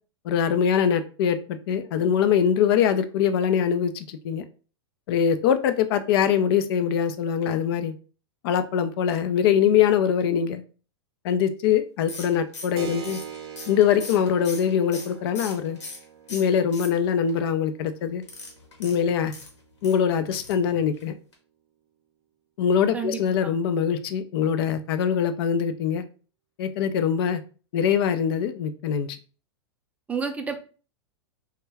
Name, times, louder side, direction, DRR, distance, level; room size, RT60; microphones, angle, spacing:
voice 1, 0.2-4.4 5.1-7.9 8.4-10.6 11.2-13.2 13.7-15.8 16.3-18.2 18.8-19.3 19.8-21.2 22.6-26.1 26.6-27.4 27.7-29.1, left 8 dB, 60° left, 11 dB, 0.4 m, -23 dB
sound 1, 12.1-16.0 16.3-17.3 18.2-20.0 20.4-20.7 20.9-21.0 21.3-21.4, left 3 dB, 85° left, 1.0 m, -40 dB
Keyboard (musical), 12.8-21.0, right 8 dB, 60° right, 0.5 m, -44 dB
voice 2, 22.9-23.5 30.1-30.6, right 5 dB, 10° right, 5 dB, 0.4 m, -30 dB
2.2 x 2.2 x 3.2 m, 0.37 s
hypercardioid pair, 115°, 15 cm